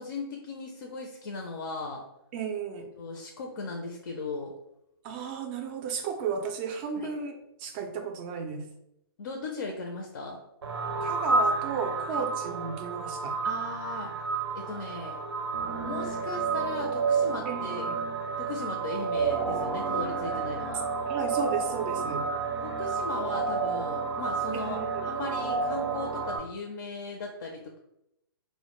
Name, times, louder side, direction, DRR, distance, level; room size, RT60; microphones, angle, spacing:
voice 1, 0.0-2.0 3.0-4.6 7.0-7.1 9.2-10.4 12.1-12.2 13.4-14.1 14.5-15.2 15.8-17.9 18.4-20.8 22.6-27.8, left 3 dB, 55° left, 1 dB, 0.4 m, -37 dB
voice 2, 2.3-2.9 5.0-8.7 11.0-13.4 17.5-18.0 20.3-20.4 21.1-22.3 24.6-25.1, right 6 dB, 25° right, 4 dB, 0.3 m, -34 dB
sound 1, 10.6-26.4, right 4 dB, 85° right, 0.5 m, -30 dB
2.1 x 2.0 x 2.9 m, 0.82 s
hypercardioid pair, 140°, 13 cm